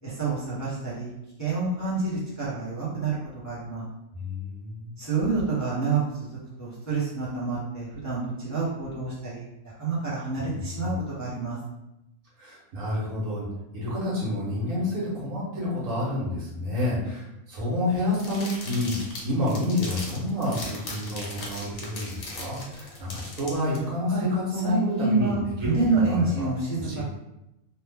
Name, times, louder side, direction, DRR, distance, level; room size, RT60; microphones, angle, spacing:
voice 1, 0.0-1.1 1.4-3.2 3.4-3.8 5.0-10.9 11.2-11.6 24.1-27.0, right 4 dB, 15° left, -9 dB, 0.7 m, -28 dB
voice 2, 4.1-5.0 10.4-10.9 12.4-13.5 13.7-19.0 19.2-25.8 26.1-26.5 26.8-27.0, left 1 dB, 75° right, -7 dB, 1.6 m, -29 dB
sound 1, 18.1-23.8, left 2 dB, 60° left, 1.1 m, -38 dB
3.2 x 2.1 x 3.6 m, 0.90 s
omnidirectional pair, 1.4 m